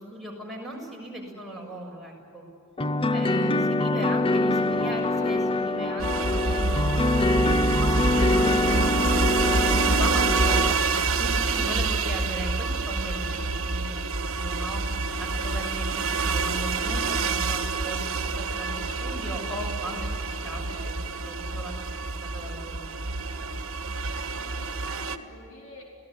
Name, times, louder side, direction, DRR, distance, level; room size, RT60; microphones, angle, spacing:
voice 1, 0.0-2.4 3.1-13.3 13.6-14.8 15.2-20.9 21.3-22.9, right 1 dB, ahead, 0 dB, 7.1 m, -38 dB
sound 1, 2.8-10.7, left 2 dB, 25° left, 0.7 m, -24 dB
voice 2, 5.0-5.6 11.1-11.4 20.4-20.9 23.9-25.8, left 1 dB, 75° left, -1 dB, 4.7 m, -47 dB
sound 2, 6.0-25.2, right 3 dB, 70° right, 1.4 m, -27 dB
29.0 x 18.5 x 9.9 m, 2.7 s
head